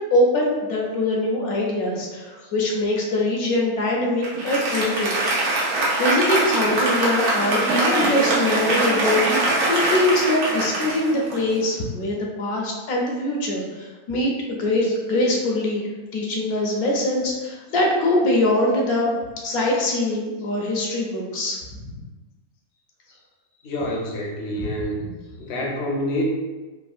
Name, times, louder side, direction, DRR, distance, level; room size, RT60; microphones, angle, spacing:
voice 1, 0.0-5.1 6.0-19.2 19.4-21.8 24.6-24.7, left 1 dB, 80° left, -2 dB, 1.1 m, -23 dB
Applause, 4.2-11.8, right 2 dB, 85° right, 1.2 m, -22 dB
voice 2, 23.6-25.0 25.4-26.2, left 1 dB, 65° left, -2 dB, 0.7 m, -27 dB
3.4 x 2.1 x 2.4 m, 1.2 s
omnidirectional pair, 1.6 m